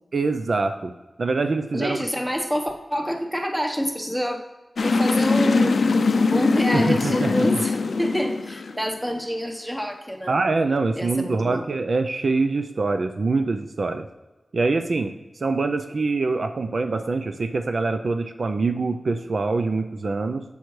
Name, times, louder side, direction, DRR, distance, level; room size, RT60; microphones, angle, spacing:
voice 1, 0.1-0.9 1.2-2.0 6.7-7.3 10.3-14.1 14.5-20.4, right 3 dB, 65° right, 7 dB, 0.5 m, -24 dB
voice 2, 1.7-4.4 4.8-5.8 6.3-10.4 10.9-11.6, equal, 5° right, 3 dB, 1.1 m, -27 dB
sound 1, 4.8-9.2, left 3 dB, 80° left, 0.4 m, -21 dB
7.8 x 7.0 x 3.2 m, 1.1 s
wide cardioid pair, 70°, 0 cm